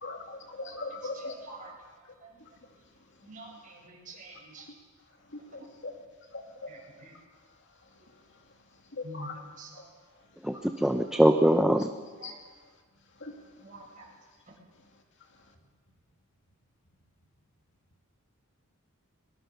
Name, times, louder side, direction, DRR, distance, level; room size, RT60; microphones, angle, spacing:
voice 1, 0.0-1.3 5.5-5.9 6.3-6.7 9.1-9.3 12.2-12.3 13.2-13.3, left 3 dB, 55° left, 3 dB, 2.6 m, -39 dB
voice 2, 1.0-1.7 3.2-4.6 6.7-7.1 9.0-9.9 11.8-12.4 13.6-14.0, right 2 dB, 40° right, -2 dB, 7.6 m, -47 dB
voice 3, 10.8-11.9, equal, 5° right, 6 dB, 0.7 m, -21 dB
22.5 x 21.0 x 6.7 m, 1.5 s
head